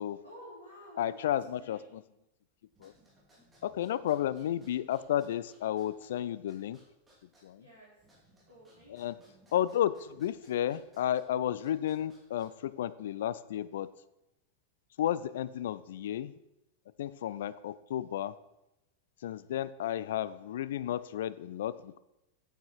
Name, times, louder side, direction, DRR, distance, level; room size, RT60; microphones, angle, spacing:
voice 1, 0.2-1.9 7.6-7.9 8.5-9.2, equal, 90° right, -10 dB, 3.8 m, -52 dB
voice 2, 1.0-1.8 2.8-2.9 3.6-6.8 7.4-7.6 8.9-9.2 9.5-13.9 15.0-16.3 17.0-18.3 19.2-22.0, left 11 dB, 60° left, 17 dB, 0.4 m, -32 dB
sound 1, 2.7-12.8, right 1 dB, 15° right, 3.5 m, -64 dB
9.0 x 8.9 x 4.6 m, 0.91 s
figure-of-eight pair, 90°, 0 cm